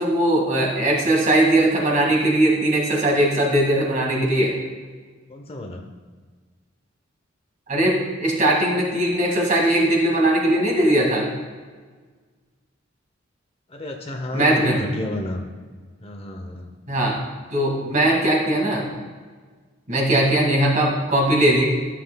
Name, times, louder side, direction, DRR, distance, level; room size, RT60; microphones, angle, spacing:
voice 1, 0.0-4.5 7.7-11.3 14.3-14.8 16.9-17.2 17.5-18.8 19.9-21.7, right 1 dB, 40° right, -1 dB, 2.0 m, -19 dB
voice 2, 5.3-5.8 13.7-15.4 16.0-16.7, left 1 dB, 30° left, 3 dB, 0.7 m, -31 dB
13.5 x 7.6 x 2.3 m, 1.5 s
head